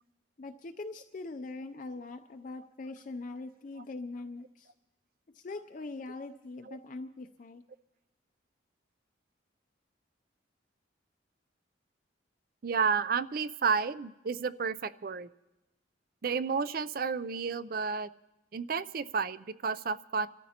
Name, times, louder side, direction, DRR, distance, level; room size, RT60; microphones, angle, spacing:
voice 1, 0.4-4.7 5.3-7.6, left 3 dB, 40° left, 6 dB, 0.5 m, -42 dB
voice 2, 12.6-15.3 16.2-18.1 18.5-20.3, right 5 dB, 50° right, 16 dB, 0.4 m, -31 dB
29.5 x 13.5 x 2.9 m, 1.0 s
head